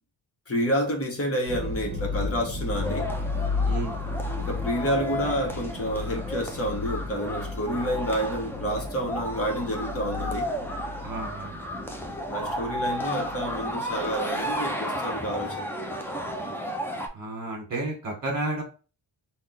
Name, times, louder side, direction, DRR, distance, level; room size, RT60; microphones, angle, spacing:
voice 1, 0.5-3.1 4.4-10.6 12.3-15.7, equal, 30° left, 1.1 m, -29 dB
sound 1, 1.5-14.4, left 3 dB, 15° right, 0.9 m, -34 dB
sound 2, 2.8-17.1, equal, 5° left, 0.4 m, -33 dB
voice 2, 3.6-4.0 11.0-11.6 17.1-18.6, right 2 dB, 45° right, 1.4 m, -32 dB
3.4 x 2.3 x 3.9 m
wide cardioid pair, 120°, 47 cm